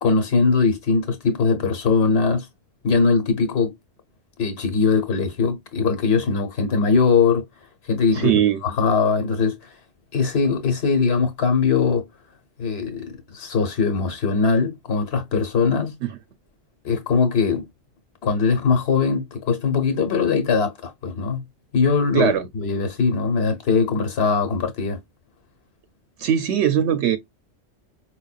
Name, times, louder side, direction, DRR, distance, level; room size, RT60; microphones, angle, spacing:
voice 1, 0.0-2.5 2.8-3.7 4.4-7.4 7.9-8.3 8.6-9.6 10.1-12.0 12.6-16.0 16.8-17.6 18.2-21.4 21.7-25.0, left 5 dB, 65° left, 1.2 m, -21 dB
voice 2, 8.1-8.6 16.0-16.1 22.1-22.5 26.2-27.2, right 9 dB, 80° right, 0.9 m, -20 dB
5.0 x 2.2 x 2.4 m
omnidirectional pair, 1.1 m